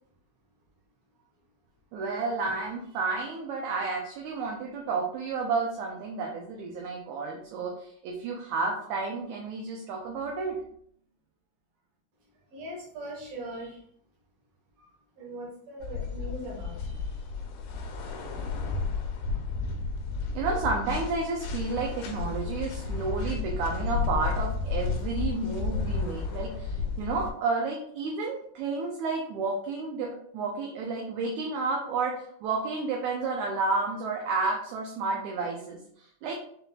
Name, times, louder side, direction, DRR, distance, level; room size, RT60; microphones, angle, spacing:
voice 1, 1.9-10.6 20.3-36.3, right 4 dB, 75° right, 0 dB, 1.9 m, -31 dB
voice 2, 12.5-13.8 14.8-14.9 15.2-17.1 18.2-18.4, right 1 dB, 60° right, -2 dB, 2.3 m, -40 dB
sound 1, 15.8-27.3, left 4 dB, 75° left, 2.0 m, -32 dB
5.7 x 3.6 x 2.3 m, 0.64 s
omnidirectional pair, 3.6 m